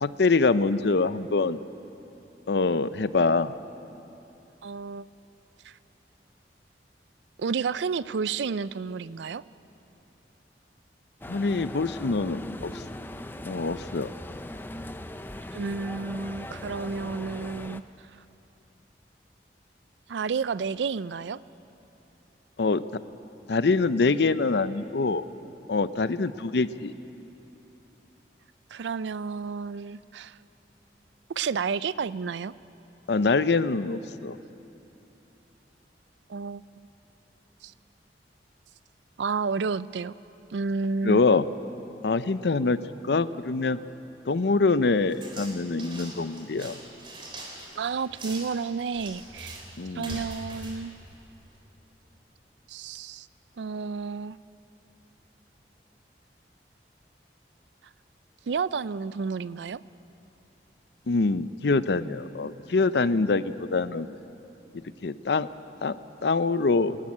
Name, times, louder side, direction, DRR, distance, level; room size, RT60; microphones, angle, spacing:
voice 1, 0.0-1.6 2.5-3.5 11.3-12.8 13.4-14.1 22.6-22.8 23.5-25.2 25.7-26.9 33.1-34.4 41.0-41.5 42.0-42.8 43.0-43.8 44.3-46.8 49.8-50.2 61.1-64.1 64.7-65.5 65.8-66.0 66.2-67.0, left 3 dB, 70° left, 14 dB, 0.6 m, -24 dB
voice 2, 4.6-5.1 5.6-5.8 7.4-9.4 15.5-17.8 20.1-21.4 28.7-30.4 31.4-32.5 36.3-36.6 37.6-37.7 39.2-40.1 40.5-41.2 47.8-49.6 49.9-50.9 52.7-53.3 53.6-54.4 58.5-59.8, right 5 dB, 90° right, 18 dB, 0.4 m, -31 dB
sound 1, 11.2-17.8, left 1 dB, 10° left, 0.5 m, -40 dB
sound 2, 45.1-51.7, right 1 dB, 30° right, 3.4 m, -43 dB
20.0 x 13.5 x 9.7 m, 3.0 s
head